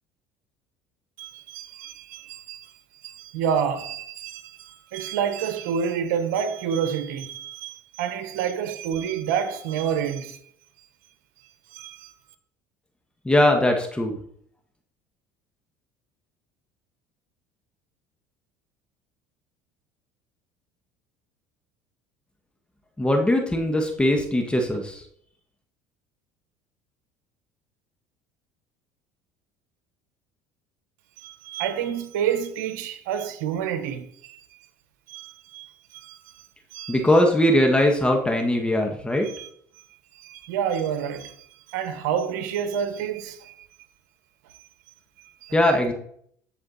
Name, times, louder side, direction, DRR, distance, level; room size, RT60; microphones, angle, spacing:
voice 1, 1.2-10.4 11.7-12.1 31.2-34.4 35.1-36.4 36.7-37.0 39.2-39.5 40.1-43.7 45.2-45.6, right 8 dB, 85° right, 1.2 m, -29 dB
voice 2, 13.2-14.2 23.0-25.0 36.9-39.3 45.5-45.9, left 1 dB, 10° left, 1.6 m, -20 dB
14.0 x 4.9 x 4.2 m
supercardioid pair, 90°, 9 cm